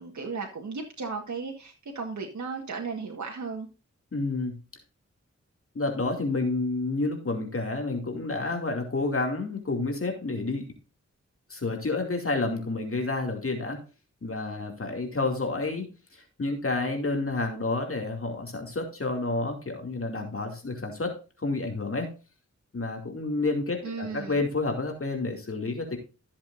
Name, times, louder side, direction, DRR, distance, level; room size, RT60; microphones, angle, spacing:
voice 1, 0.0-3.7 23.8-24.4, right 4 dB, 85° right, 1 dB, 1.7 m, -35 dB
voice 2, 4.1-4.6 5.7-10.7 11.5-13.8 14.2-22.1 22.7-26.0, left 3 dB, 50° left, 3 dB, 2.5 m, -30 dB
14.0 x 7.4 x 2.6 m, 0.33 s
wide cardioid pair, 70°, 29 cm